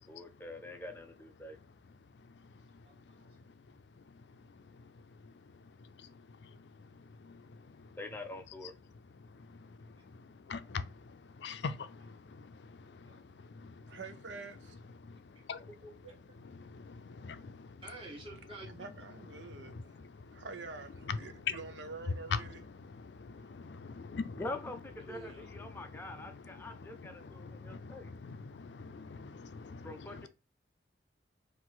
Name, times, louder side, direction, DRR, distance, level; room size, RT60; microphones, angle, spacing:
voice 1, 0.1-1.6 8.0-8.7 24.4-28.1 29.8-30.3, left 2 dB, 10° left, 0.4 m, -44 dB
voice 2, 1.4-8.0 8.6-14.0 14.7-15.7 16.5-17.8 19.2-20.5 21.0-30.3, left 5 dB, 75° left, 0.4 m, -45 dB
voice 3, 2.8-3.4 13.1-13.2 15.3-15.4 15.8-16.1 17.8-18.7 25.1-25.5, right 2 dB, 30° right, 1.4 m, -50 dB
voice 4, 13.9-14.8 18.7-20.0 20.3-22.6, right 4 dB, 80° right, 0.6 m, -46 dB
4.5 x 2.6 x 3.9 m
head